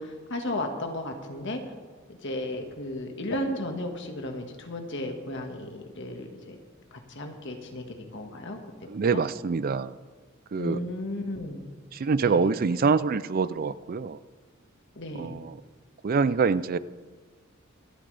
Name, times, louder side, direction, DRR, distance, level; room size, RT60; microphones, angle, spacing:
voice 1, 0.0-1.6 2.1-6.6 6.9-9.2 10.6-11.7 12.2-12.5 14.9-15.4, left 1 dB, 60° left, 4 dB, 1.7 m, -34 dB
voice 2, 8.9-10.0 10.5-10.8 11.9-14.2 15.1-15.6 16.0-16.8, right 5 dB, 45° right, 17 dB, 0.4 m, -25 dB
26.0 x 9.2 x 3.4 m, 1.5 s
head